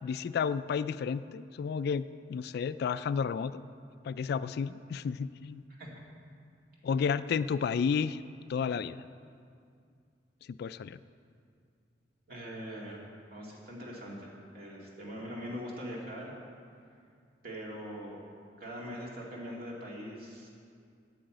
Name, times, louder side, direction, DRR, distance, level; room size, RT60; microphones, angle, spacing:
voice 1, 0.0-3.6 4.0-5.6 6.8-8.2 8.5-9.0 10.5-11.0, left 6 dB, 60° left, 15 dB, 0.3 m, -32 dB
voice 2, 12.3-13.0 13.3-16.4 17.4-18.2 18.6-20.5, equal, 55° right, -3 dB, 2.4 m, -42 dB
8.7 x 8.5 x 7.9 m, 2.3 s
head